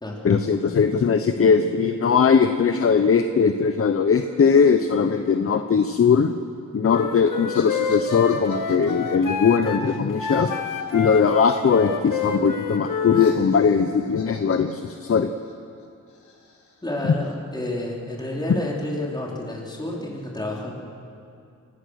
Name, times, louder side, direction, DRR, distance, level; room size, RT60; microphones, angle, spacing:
voice 1, 0.2-6.3 6.7-10.5 10.9-15.3 17.0-17.1, left 6 dB, 45° left, 8 dB, 0.8 m, -20 dB
Wind instrument woodwind instrument, 6.9-13.4, left 5 dB, 85° left, 1.6 m, -28 dB
sound 1, 7.5-11.5 11.8-12.4 12.7-17.4, left 4 dB, 65° left, 3.7 m, -46 dB
voice 2, 16.8-20.7, left 1 dB, 15° left, -3 dB, 4.0 m, -30 dB
28.5 x 16.5 x 6.4 m, 2.5 s
wide cardioid pair, 115°, 32 cm